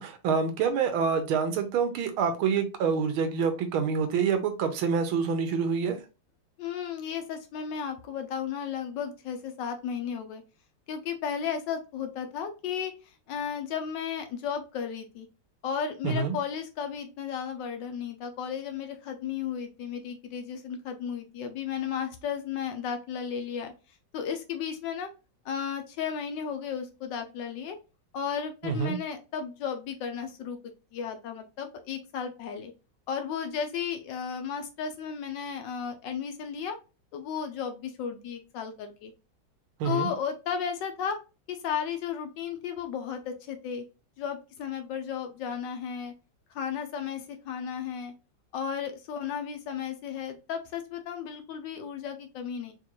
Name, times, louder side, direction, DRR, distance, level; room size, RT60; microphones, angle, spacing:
voice 1, 0.0-6.0 16.0-16.4 28.6-29.0 39.8-40.1, right 6 dB, 90° right, 8 dB, 1.6 m, -27 dB
voice 2, 6.6-10.4 10.9-12.9 13.3-15.3 15.6-23.7 24.1-25.1 25.4-27.8 28.1-30.6 30.9-32.7 33.1-36.8 37.1-39.1 39.8-41.2 41.5-43.8 44.2-46.1 46.5-48.1 48.5-52.7, left 7 dB, 75° left, 6 dB, 1.2 m, -34 dB
4.5 x 2.5 x 2.9 m, 0.30 s
omnidirectional pair, 2.2 m